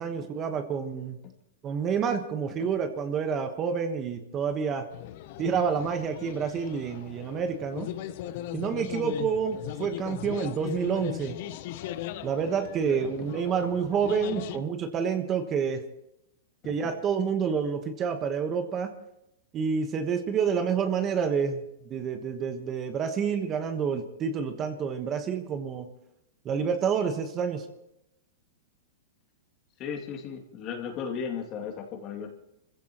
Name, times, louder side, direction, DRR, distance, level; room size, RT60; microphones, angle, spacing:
voice 1, 0.0-1.2 1.6-4.9 5.4-7.9 8.5-11.4 12.2-15.8 16.6-18.9 19.5-21.6 21.9-25.9 26.4-27.6, right 6 dB, 25° right, 7 dB, 1.3 m, -28 dB
sound 1, 4.9-14.6, left 13 dB, 55° left, 0.8 m, -38 dB
voice 2, 29.8-32.3, left 6 dB, 35° left, 3 dB, 2.7 m, -36 dB
25.5 x 15.5 x 3.1 m, 0.83 s
hypercardioid pair, 140°, 0 cm